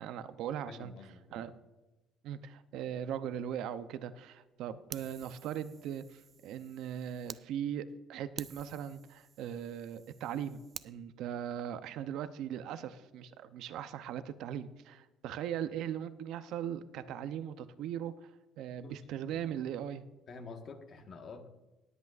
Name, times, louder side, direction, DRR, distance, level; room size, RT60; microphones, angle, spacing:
voice 1, 0.0-0.9 1.3-1.5 2.2-18.3 18.6-20.1, right 9 dB, 75° right, 12 dB, 0.6 m, -39 dB
voice 2, 0.7-1.5 18.8-19.0 19.3-19.6 20.3-21.5, left 4 dB, 50° left, 5 dB, 1.5 m, -48 dB
Fire, 4.9-7.4 7.9-8.0 8.4-10.9, right 7 dB, 40° right, 0.4 m, -50 dB
20.0 x 8.2 x 2.5 m, 1.1 s
cardioid pair, 120°, 0 cm